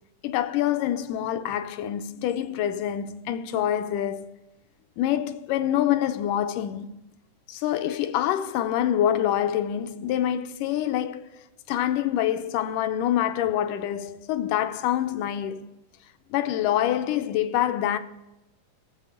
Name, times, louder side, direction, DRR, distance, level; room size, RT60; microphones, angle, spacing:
voice 1, 0.2-4.3 5.0-7.0 7.5-11.3 11.7-15.7 16.3-18.0, left 11 dB, 80° left, 2.2 m, -26 dB
16.5 x 7.5 x 5.0 m
omnidirectional pair, 3.8 m